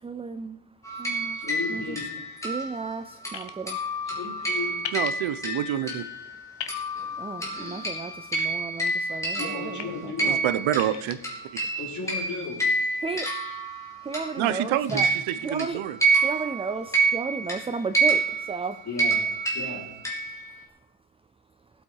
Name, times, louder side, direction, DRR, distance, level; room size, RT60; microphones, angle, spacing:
voice 1, 0.0-0.6 1.0-1.4 1.7-2.0 2.4-3.8 7.2-10.4 13.0-13.3 14.0-15.1 15.4-15.8 16.2-18.2 18.5-18.8, right 4 dB, 15° right, 10 dB, 0.3 m, -33 dB
sound 1, 0.8-6.4 6.7-14.5 14.9-20.6, right 3 dB, 5° left, 3.3 m, -28 dB
voice 2, 1.3-2.1 4.0-4.8 9.4-10.8 11.8-12.6 18.8-19.2 19.5-19.8, left 4 dB, 35° left, -2 dB, 4.9 m, -35 dB
sound 2, 3.3-3.5 4.8-5.1 6.6-6.8 8.3-8.9 9.5-9.8 10.7-11.2, left 10 dB, 60° left, 1.4 m, -36 dB
voice 3, 4.9-6.0 10.2-11.2 14.4-16.0, right 12 dB, 85° right, 14 dB, 0.9 m, -27 dB
18.5 x 8.5 x 4.7 m, 0.84 s
cardioid pair, 160°, 46 cm